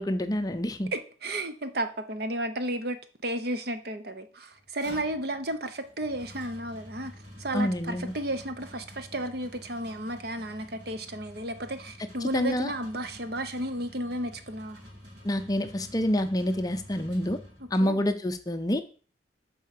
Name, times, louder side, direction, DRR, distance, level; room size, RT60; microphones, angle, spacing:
voice 1, 0.0-0.9 7.5-8.1 12.3-12.7 15.2-17.4 17.7-18.8, equal, 20° left, 9 dB, 0.5 m, -27 dB
voice 2, 0.9-14.8 17.6-18.0, right 1 dB, 55° right, 9 dB, 0.9 m, -33 dB
sound 1, 4.5-18.0, equal, 70° right, 3.1 m, -49 dB
7.8 x 4.7 x 6.6 m, 0.40 s
head